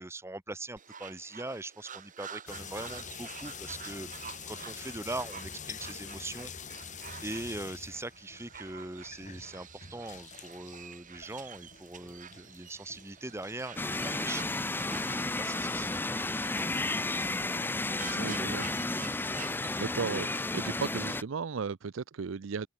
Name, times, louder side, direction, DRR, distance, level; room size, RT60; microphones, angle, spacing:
voice 1, 0.0-6.5 7.2-17.4 17.8-18.7, right 2 dB, 15° right, 1.4 m, -42 dB
sound 1, 0.8-19.9, right 7 dB, 40° right, 3.1 m, -49 dB
sound 2, 2.5-21.2, left 6 dB, 40° left, 4.5 m, -48 dB
sound 3, 13.8-21.2, left 2 dB, 10° left, 0.6 m, -32 dB
voice 2, 18.1-18.6 19.8-22.7, right 5 dB, 80° right, 0.5 m, -35 dB
open air
head